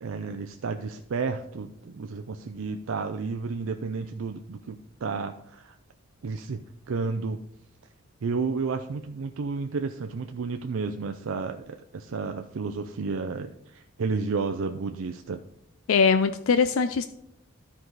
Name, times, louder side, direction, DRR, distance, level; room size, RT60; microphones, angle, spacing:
voice 1, 0.0-5.8 6.2-7.4 8.2-15.4, right 4 dB, 75° right, 7 dB, 0.5 m, -32 dB
voice 2, 15.9-17.1, left 5 dB, 80° left, 10 dB, 0.4 m, -21 dB
12.5 x 4.7 x 3.9 m, 0.80 s
head